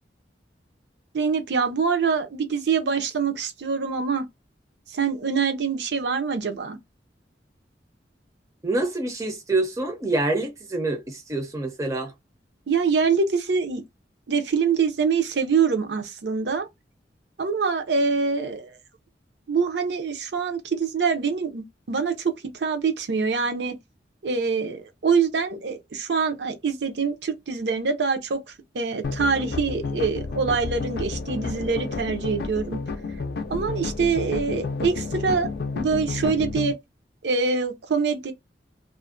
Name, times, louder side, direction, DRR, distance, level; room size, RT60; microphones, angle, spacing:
voice 1, 1.1-4.3 4.9-6.8 12.7-13.8 14.3-16.7 17.4-18.8 19.5-23.8 24.2-28.4 28.7-32.8 33.5-35.5 35.7-36.7 37.2-38.3, right 5 dB, 70° right, 0.6 m, -25 dB
voice 2, 8.6-12.1, right 2 dB, 20° right, 0.5 m, -26 dB
sound 1, 29.0-36.7, left 4 dB, 65° left, 0.4 m, -31 dB
2.5 x 2.0 x 2.5 m
head